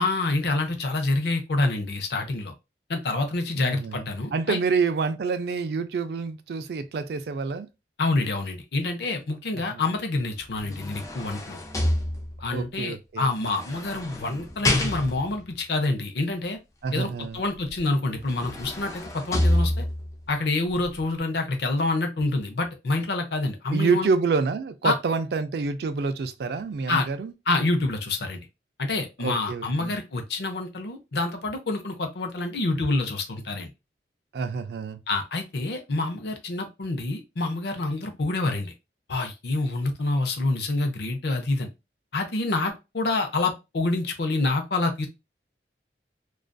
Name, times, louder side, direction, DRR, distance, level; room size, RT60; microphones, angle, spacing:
voice 1, 0.0-2.5 2.9-4.6 8.0-11.6 12.4-16.6 16.9-19.8 20.3-24.1 24.8-25.0 26.9-27.1 27.5-28.5 28.8-33.7 35.1-38.7 39.1-41.7 42.1-45.1, left 2 dB, 65° left, 0.6 m, -27 dB
voice 2, 3.6-4.1 4.3-7.7 9.7-9.8 12.5-13.3 16.8-17.4 23.7-27.3 29.2-30.0 34.3-35.0, right 4 dB, 65° right, 0.3 m, -27 dB
sound 1, 10.4-12.6 13.4-15.4 17.7-17.8 18.2-20.2 20.7-20.8, left 1 dB, 20° left, 0.3 m, -28 dB
2.5 x 2.3 x 2.2 m
head